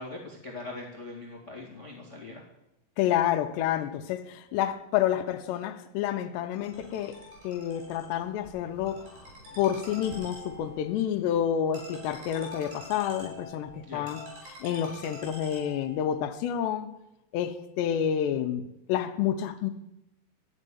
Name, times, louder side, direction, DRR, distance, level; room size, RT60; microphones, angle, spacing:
voice 1, 0.0-2.4 9.5-9.6 13.8-14.0, left 2 dB, 30° left, -2 dB, 1.5 m, -41 dB
voice 2, 3.0-7.2 7.4-9.0 9.6-14.2 14.6-16.9 17.3-19.7, left 10 dB, 85° left, 7 dB, 2.9 m, -29 dB
Ringtone, 6.5-16.1, left 1 dB, 60° right, 6.5 m, -46 dB
13.5 x 6.5 x 10.0 m, 0.87 s
omnidirectional pair, 4.8 m